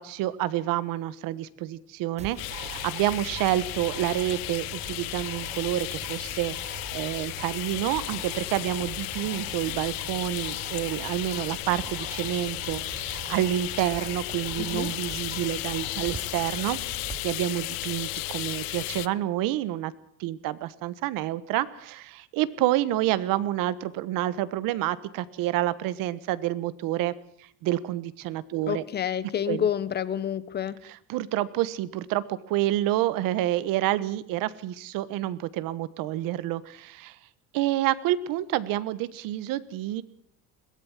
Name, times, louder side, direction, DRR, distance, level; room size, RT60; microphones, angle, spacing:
voice 1, 0.0-16.8 17.2-19.9 20.2-27.1 27.6-28.8 29.5-29.7 30.8-37.2 37.5-40.0, right 14 dB, 60° right, 16 dB, 1.4 m, -28 dB
sound 1, 2.2-17.2, right 6 dB, 20° right, 0.8 m, -43 dB
sound 2, 2.4-19.1, left 20 dB, 70° left, 0.9 m, -34 dB
voice 2, 14.6-14.9 28.7-30.8, left 9 dB, 25° left, 16 dB, 1.0 m, -29 dB
22.0 x 17.0 x 7.4 m, 0.66 s
cardioid pair, 170°, 37 cm